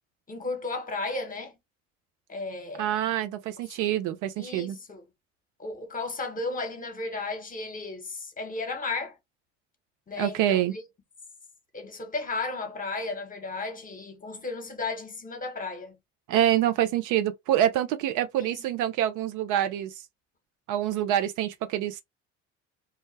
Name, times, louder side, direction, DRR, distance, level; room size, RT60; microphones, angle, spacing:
voice 1, 0.3-1.5 2.3-3.0 4.4-5.0 5.6-9.2 10.1-10.8 11.7-15.9 18.4-18.6, left 3 dB, 20° left, 1.0 m, -34 dB
voice 2, 2.8-4.8 10.2-10.7 16.3-19.9 20.7-22.0, right 11 dB, 55° right, 0.4 m, -26 dB
2.3 x 2.1 x 3.1 m
hypercardioid pair, 65°, 36 cm